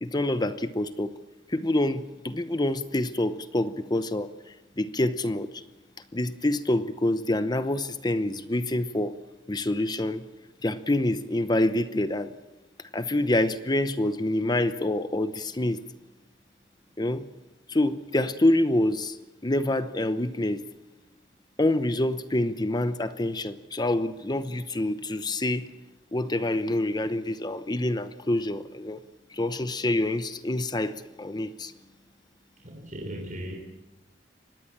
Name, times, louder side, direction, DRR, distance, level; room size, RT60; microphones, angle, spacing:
voice 1, 0.0-1.1 1.5-4.3 4.8-5.6 6.1-9.2 9.5-10.2 10.6-12.3 12.9-15.8 17.0-17.2 17.7-19.2 19.4-20.6 21.6-25.7 26.1-29.0 29.3-31.7, left 1 dB, 25° left, 12 dB, 0.9 m, -26 dB
voice 2, 32.6-33.5, equal, 50° right, 1 dB, 3.6 m, -37 dB
25.0 x 20.0 x 7.4 m, 1.0 s
head